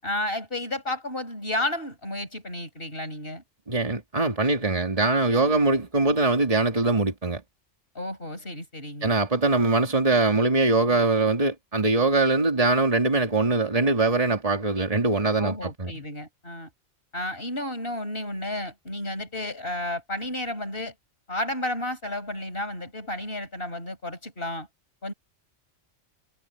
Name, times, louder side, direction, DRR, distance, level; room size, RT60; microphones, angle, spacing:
voice 1, 0.0-3.4 7.9-9.1 15.4-16.7 17.1-20.9 21.3-24.7 25.0-25.1, left 1 dB, 50° left, 7.7 m, -32 dB
voice 2, 3.7-7.4 9.0-15.9, right 3 dB, 30° right, 2.6 m, -22 dB
omnidirectional pair, 1.2 m